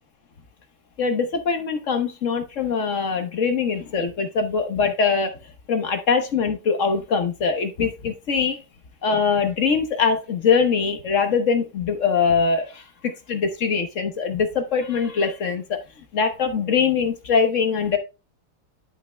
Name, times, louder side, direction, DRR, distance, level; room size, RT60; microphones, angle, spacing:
voice 1, 1.0-5.3 5.7-8.6 9.0-15.8 16.1-18.0, left 5 dB, 45° left, 1.2 m, -22 dB
11.5 x 5.7 x 2.2 m
omnidirectional pair, 2.2 m